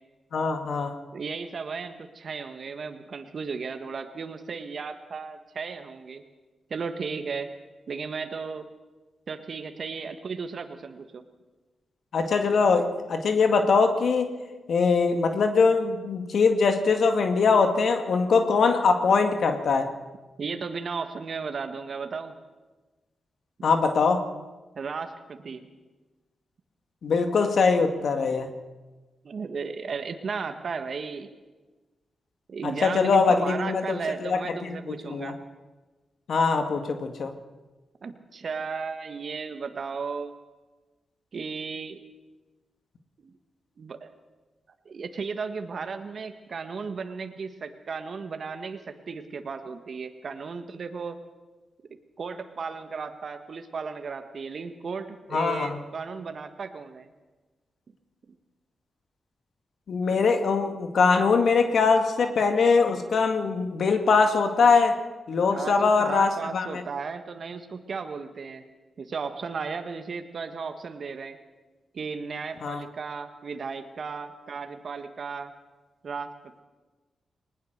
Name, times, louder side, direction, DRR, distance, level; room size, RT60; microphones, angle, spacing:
voice 1, 0.3-0.9 12.1-14.3 14.7-19.9 23.6-24.2 27.0-28.5 32.6-35.3 36.3-37.3 55.3-55.8 59.9-65.0 65.3-66.8 72.6-72.8, left 4 dB, 70° left, 6 dB, 2.0 m, -22 dB
voice 2, 1.1-6.2 6.7-7.5 7.9-8.7 9.3-11.2 20.4-22.4 23.6-23.7 24.7-25.7 29.2-31.3 32.5-35.4 38.0-40.4 41.3-42.0 43.2-43.4 43.8-44.1 44.8-51.2 52.2-57.1 65.5-68.6 69.0-71.4 71.9-75.5 76.0-76.3, right 5 dB, 60° right, 7 dB, 1.6 m, -35 dB
20.0 x 19.5 x 6.7 m, 1.2 s
supercardioid pair, 40°, 0 cm